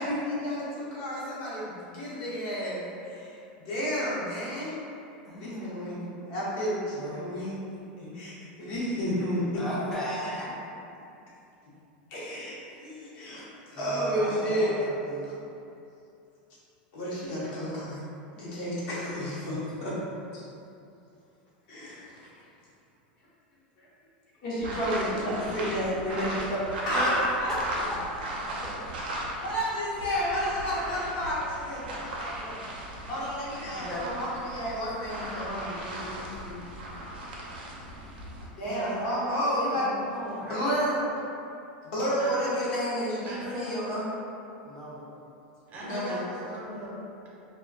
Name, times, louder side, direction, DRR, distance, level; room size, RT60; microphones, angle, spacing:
voice 1, 0.0-4.7 5.3-9.6 12.1-13.4 13.7-14.7 15.2-15.3 16.9-18.0 18.3-19.9 20.3-20.4 21.7-22.3 23.8-23.9 24.4-27.5 28.4-28.6 29.4-36.6 38.5-39.9 40.5-40.9 41.8-44.0 45.8-46.2, equal, 60° left, -8 dB, 0.8 m, -31 dB
voice 2, 5.2-6.0 6.9-7.3 9.6-10.6 13.7-15.3 26.9-27.1 27.5-27.6 27.9-28.2 28.6-28.7 33.5-34.0 44.6-45.0, equal, 10° left, -7 dB, 0.5 m, -36 dB
sound 1, 24.6-29.6 29.9-38.5, right 1 dB, 85° right, 0.5 m, -37 dB
voice 3, 38.6-41.0 42.2-42.5 43.2-43.7 45.7-47.0, right 1 dB, 35° right, -5 dB, 0.6 m, -38 dB
2.2 x 2.2 x 2.5 m, 2.7 s
hypercardioid pair, 115°, 5 cm